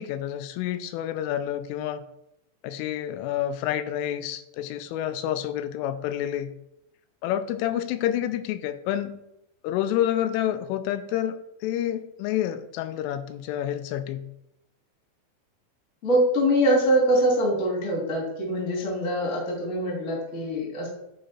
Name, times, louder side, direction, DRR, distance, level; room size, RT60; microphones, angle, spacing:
voice 1, 0.0-2.0 2.6-6.5 7.2-9.2 9.6-11.4 11.6-14.2, left 11 dB, 85° left, 10 dB, 3.2 m, -28 dB
voice 2, 16.0-20.9, equal, 25° left, -2 dB, 1.8 m, -23 dB
11.0 x 4.9 x 4.2 m, 0.82 s
omnidirectional pair, 5.6 m